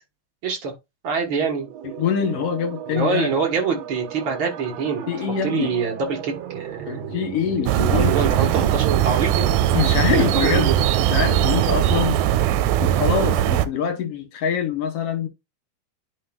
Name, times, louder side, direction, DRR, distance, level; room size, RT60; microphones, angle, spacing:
voice 1, 0.4-0.7 1.0-1.7 2.9-5.1 5.4-7.2 7.7-9.5 10.1-10.8, right 5 dB, 50° right, 1.9 m, -25 dB
sound 1, 1.5-8.0, right 9 dB, 65° right, 2.0 m, -36 dB
voice 2, 1.8-3.4 5.1-5.7 6.9-8.2 9.7-10.7 11.0-12.2 12.8-15.3, left 7 dB, 65° left, 1.7 m, -24 dB
sound 2, 7.7-13.7, right 11 dB, 85° right, 2.1 m, -20 dB
10.5 x 4.1 x 2.3 m
omnidirectional pair, 3.5 m